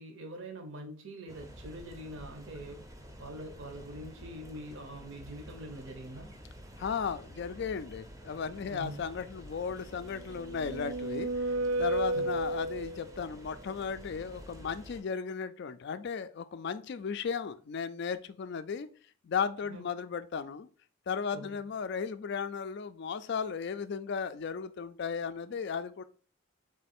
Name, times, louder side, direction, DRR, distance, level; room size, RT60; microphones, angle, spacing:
voice 1, 0.0-2.8 3.2-6.4 8.7-9.1 12.1-12.3 19.7-19.8 21.3-21.6, right 1 dB, 60° right, 4 dB, 0.7 m, -44 dB
sound 1, 1.3-15.0, equal, 15° right, 0.6 m, -50 dB
voice 2, 6.8-11.5 11.8-18.9 19.2-20.7 21.1-26.0, left 6 dB, 50° left, 12 dB, 0.3 m, -35 dB
sound 2, 10.1-13.2, right 2 dB, 85° right, 0.4 m, -32 dB
3.7 x 3.2 x 4.2 m, 0.43 s
head